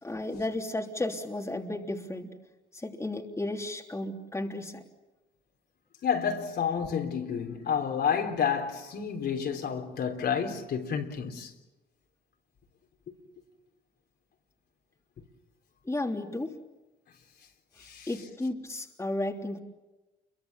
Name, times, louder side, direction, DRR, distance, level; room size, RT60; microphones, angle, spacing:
voice 1, 0.0-2.4 2.7-4.8 15.8-16.6 18.1-19.6, left 2 dB, 15° left, 3.3 m, -33 dB
voice 2, 6.0-11.5 13.1-13.2 17.8-18.1, left 7 dB, 60° left, 3.8 m, -30 dB
29.0 x 23.5 x 7.4 m
cardioid pair, 90°, 19 cm